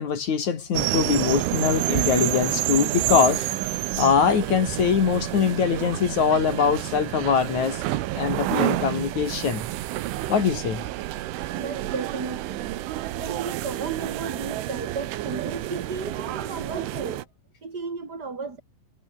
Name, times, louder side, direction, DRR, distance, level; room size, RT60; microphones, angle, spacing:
voice 1, 0.0-7.9 8.1-9.7 10.3-10.8, left 6 dB, 45° left, 3.3 m, -23 dB
sound 1, 0.7-17.2, right 15 dB, 75° right, 3.7 m, -29 dB
voice 2, 3.0-3.3 11.5-12.8 13.1-17.3 17.6-18.6, right 4 dB, 20° right, 5.0 m, -34 dB
omnidirectional pair, 5.6 m